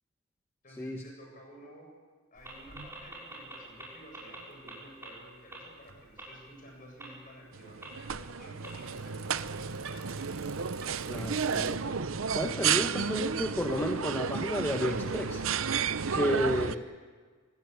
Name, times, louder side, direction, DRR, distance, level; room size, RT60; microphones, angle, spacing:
voice 1, 0.6-1.9 2.3-10.4, equal, 40° left, 1 dB, 7.9 m, -52 dB
sound 1, 2.4-2.5 2.7-3.8 4.1-4.4 4.7-4.8 5.0-5.1 5.5-5.6 6.2-6.3 7.0-7.1 7.8-7.9 8.6-8.7, right 2 dB, 10° right, 6.3 m, -44 dB
Bicycle, 2.4-11.7, right 5 dB, 90° right, 3.4 m, -54 dB
sound 2, 7.5-16.7, right 6 dB, 70° right, 0.7 m, -32 dB
voice 2, 11.1-11.9 12.3-15.5 16.1-16.8, equal, 10° left, 2 dB, 1.3 m, -32 dB
26.0 x 19.5 x 8.3 m, 1.5 s
head